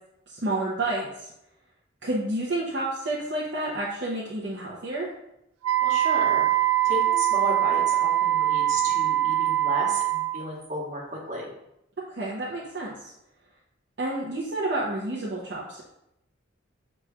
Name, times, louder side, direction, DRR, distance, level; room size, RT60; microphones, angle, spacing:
voice 1, 0.3-1.3 2.0-5.1 12.1-13.1 14.0-15.8, right 2 dB, 55° right, -6 dB, 0.7 m, -30 dB
Wind instrument woodwind instrument, 5.6-10.4, right 13 dB, 90° right, 0.3 m, -23 dB
voice 2, 5.8-6.5 6.8-11.5, equal, 35° right, -5 dB, 1.3 m, -33 dB
6.3 x 3.0 x 2.3 m, 0.84 s
head